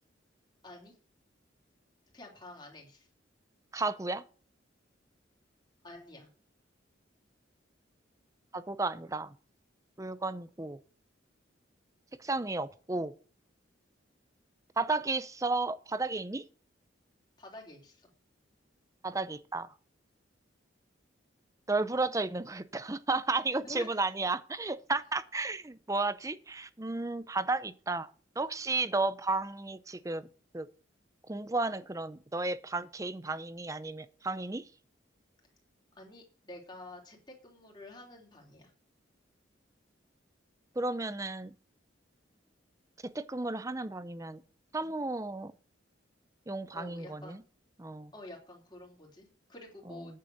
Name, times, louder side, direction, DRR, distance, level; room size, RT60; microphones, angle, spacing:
voice 1, 0.6-1.0 2.1-3.1 5.8-6.3 17.4-18.1 23.6-24.1 36.0-37.2 37.4-38.7 46.7-47.3 48.1-50.2, left 2 dB, 25° left, 3.2 m, -49 dB
voice 2, 3.7-4.2 8.5-9.3 10.0-10.8 12.2-13.1 14.8-16.4 19.0-19.7 21.7-28.1 28.4-30.3 30.5-30.7 31.3-34.6 40.8-41.5 43.0-44.4 44.7-45.5 46.5-47.4 47.8-48.1, right 3 dB, 15° right, 0.5 m, -33 dB
9.5 x 6.7 x 6.5 m
head